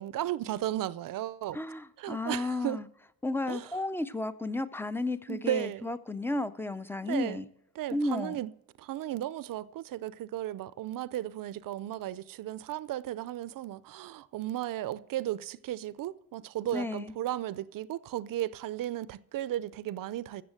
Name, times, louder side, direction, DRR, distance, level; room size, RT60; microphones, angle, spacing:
voice 1, 0.0-1.6 2.0-2.8 3.5-3.7 5.3-5.9 7.1-7.4 7.8-8.5 8.8-20.4, right 13 dB, 65° right, 0.5 m, -35 dB
voice 2, 1.5-2.9 3.2-7.5 7.9-8.4 16.7-17.1, left 2 dB, 5° left, 0.4 m, -33 dB
14.5 x 7.2 x 6.4 m
cardioid pair, 125°, 36 cm